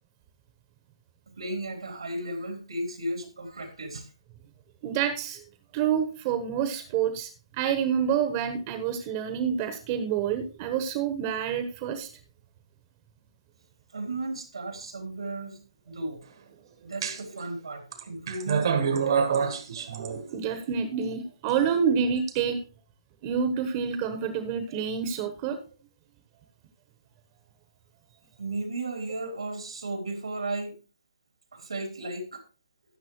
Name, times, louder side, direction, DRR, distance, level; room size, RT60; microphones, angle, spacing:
voice 1, 1.4-4.1 13.9-15.6 15.9-16.2 16.8-19.5 19.8-19.9 28.4-30.8 31.5-32.4, right 2 dB, 90° right, 4 dB, 3.6 m, -35 dB
voice 2, 4.8-5.4 5.7-12.1 20.3-22.6 23.2-25.6, right 7 dB, 30° right, 9 dB, 1.1 m, -28 dB
sound 1, 17.0-17.4 17.9-20.6 21.5-22.3, right 6 dB, 60° right, 1.5 m, -27 dB
13.0 x 8.3 x 3.1 m, 0.34 s
hypercardioid pair, 150°, 3 cm